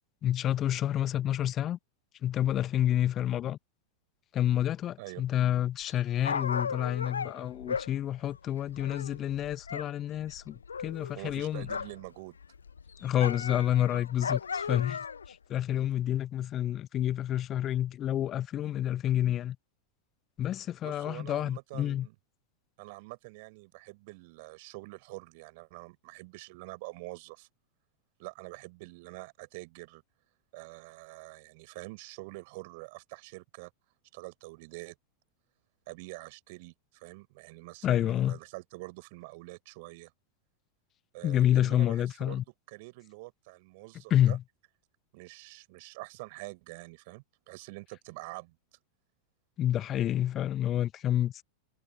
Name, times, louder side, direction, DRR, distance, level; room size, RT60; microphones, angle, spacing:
voice 1, 0.2-1.8 2.2-3.6 4.3-11.7 13.0-15.0 15.3-19.6 20.4-22.1 37.8-38.4 41.2-42.4 44.1-44.4 49.6-51.4, left 11 dB, 30° left, 1.1 m, -29 dB
Dog, 5.8-9.9 10.2-12.1 12.4-15.3 16.0-16.1, left 6 dB, 70° left, 1.2 m, -36 dB
voice 2, 11.1-12.4 20.8-22.1 22.8-27.5 28.2-30.0 30.5-33.7 34.1-35.0 35.9-40.1 41.1-42.4 42.7-44.4 45.1-48.8, right 25 dB, 50° right, 6.1 m, -46 dB
figure-of-eight pair, 90°, 0 cm